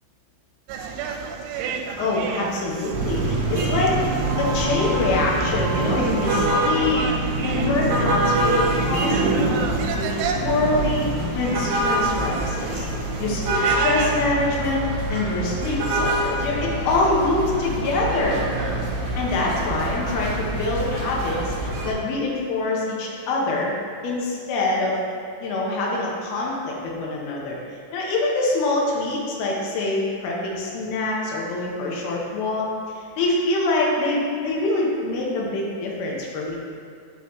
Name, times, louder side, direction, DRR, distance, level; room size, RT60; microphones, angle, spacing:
sound 1, 0.7-14.4, right 5 dB, 90° right, 3.1 m, -33 dB
voice 1, 2.0-4.0 4.4-9.6 9.9-11.1 11.3-12.9 13.2-14.8 15.1-18.4 19.2-23.7 24.0-25.0 25.4-27.6 27.9-32.6 32.9-36.5, left 2 dB, 75° left, -3 dB, 2.4 m, -25 dB
sound 2, 2.9-21.9, right 1 dB, 70° right, 2.5 m, -25 dB
11.5 x 4.0 x 3.1 m, 2.3 s
omnidirectional pair, 5.6 m